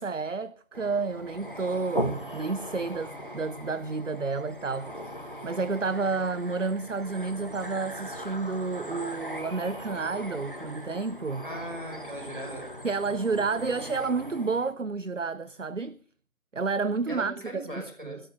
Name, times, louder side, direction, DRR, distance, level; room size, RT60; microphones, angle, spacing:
voice 1, 0.0-4.9 5.4-11.5 12.8-16.0 16.5-18.2, right 4 dB, 60° right, 0.7 m, -30 dB
sound 1, 0.7-14.7, equal, 40° left, 1.8 m, -39 dB
voice 2, 11.4-12.7 17.1-18.2, right 1 dB, 35° right, 5.5 m, -39 dB
13.5 x 12.0 x 6.4 m
figure-of-eight pair, 180°, 42 cm